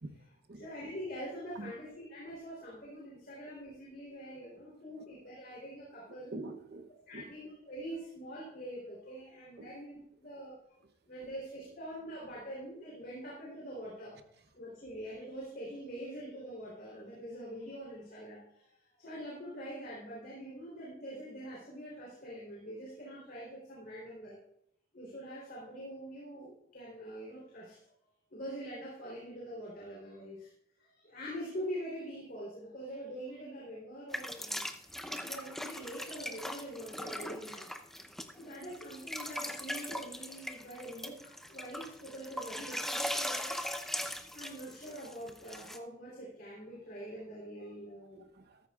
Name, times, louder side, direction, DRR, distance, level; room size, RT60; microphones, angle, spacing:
voice 1, 0.5-6.3 7.1-10.5 11.1-14.2 14.5-24.4 24.9-27.8 28.3-30.5 30.8-34.6 35.2-37.7 38.4-43.6 44.3-48.3, equal, 45° left, -5 dB, 3.5 m, -44 dB
voice 2, 6.1-7.3 9.6-9.7 48.1-48.6, right 2 dB, 50° right, 8 dB, 0.9 m, -45 dB
sound 1, 34.1-45.8, left 1 dB, ahead, 0.5 m, -40 dB
13.5 x 13.5 x 2.4 m, 0.77 s
head